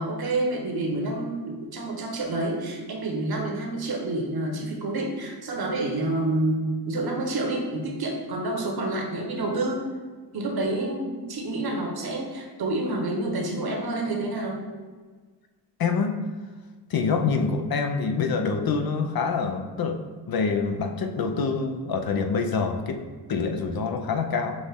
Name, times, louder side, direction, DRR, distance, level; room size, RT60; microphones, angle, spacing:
voice 1, 0.0-6.6 6.9-9.9 10.3-14.7, right 2 dB, 60° right, 1 dB, 1.1 m, -28 dB
voice 2, 15.8-16.2 16.9-20.0 20.3-23.0 23.3-24.6, left 5 dB, 60° left, 5 dB, 0.6 m, -26 dB
6.2 x 2.4 x 3.4 m, 1.4 s
cardioid pair, 60°, 42 cm